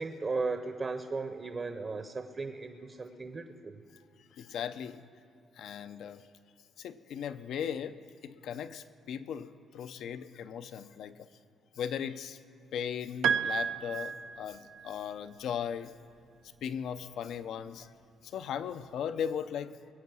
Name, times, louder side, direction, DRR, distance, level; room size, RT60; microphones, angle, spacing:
voice 1, 0.0-3.8, right 3 dB, 35° right, 7 dB, 0.8 m, -36 dB
voice 2, 4.3-5.0 5.5-6.2 6.8-11.3 11.7-12.4 12.7-15.9 16.6-17.9 18.2-19.8, left 8 dB, 75° left, 11 dB, 0.6 m, -37 dB
Piano, 13.2-14.9, right 7 dB, 85° right, 0.5 m, -32 dB
21.5 x 8.5 x 6.2 m, 2.7 s
cardioid pair, 90°, 0 cm